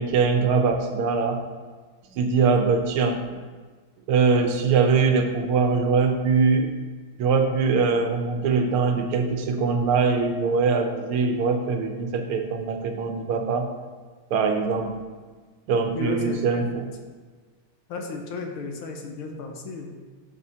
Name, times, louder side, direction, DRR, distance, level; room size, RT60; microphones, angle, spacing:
voice 1, 0.0-1.4 2.2-3.4 4.1-6.7 7.2-13.7 14.3-15.0 15.7-16.9, right 4 dB, 90° right, 5 dB, 1.7 m, -22 dB
voice 2, 15.9-16.7 17.9-20.0, left 3 dB, 80° left, 2 dB, 1.8 m, -34 dB
12.0 x 5.9 x 2.8 m, 1.4 s
omnidirectional pair, 2.3 m